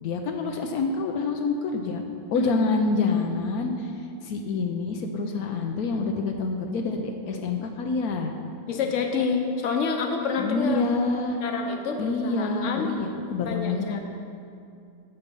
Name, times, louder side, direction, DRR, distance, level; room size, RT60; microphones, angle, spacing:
voice 1, 0.0-2.0 2.3-3.9 4.2-8.3 10.4-11.4 12.0-14.0, left 4 dB, 85° left, 3 dB, 1.2 m, -27 dB
voice 2, 2.3-2.7 8.7-10.8 11.4-12.9 13.4-14.0, left 5 dB, 60° left, 3 dB, 1.2 m, -28 dB
9.3 x 6.9 x 5.4 m, 2.4 s
omnidirectional pair, 1.6 m